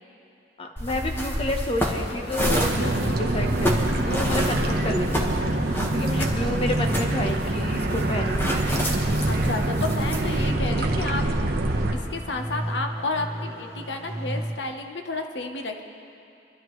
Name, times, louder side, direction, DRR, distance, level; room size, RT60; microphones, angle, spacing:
voice 1, 0.6-8.5, left 1 dB, 35° left, 3 dB, 1.1 m, -30 dB
sound 1, 0.8-10.5, equal, 15° left, 1.5 m, -30 dB
sound 2, 2.4-11.9, right 1 dB, 60° right, 1.1 m, -25 dB
sound 3, 8.9-14.5, right 1 dB, 15° right, 2.2 m, -34 dB
voice 2, 9.3-11.2 11.9-15.8, left 3 dB, 70° left, 4 dB, 1.0 m, -31 dB
25.5 x 12.0 x 3.2 m, 2.7 s
head